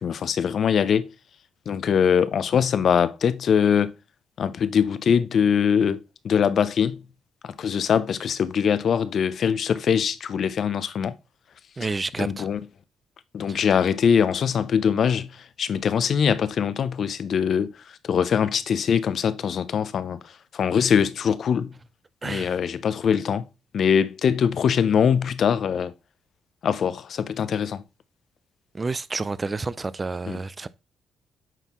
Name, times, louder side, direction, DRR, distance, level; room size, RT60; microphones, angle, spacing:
voice 1, 0.0-1.1 1.7-3.9 4.4-7.0 7.4-11.1 12.2-12.6 13.3-15.3 15.6-17.7 18.1-20.2 20.5-21.7 22.2-23.4 23.7-25.9 26.6-27.8 30.3-30.4, left 7 dB, 60° left, 0.6 m, -22 dB
voice 2, 11.8-12.5 13.5-13.7 22.2-22.5 28.7-30.7, right 3 dB, 25° right, 0.4 m, -30 dB
9.0 x 4.1 x 3.0 m
cardioid pair, 90°, 0 cm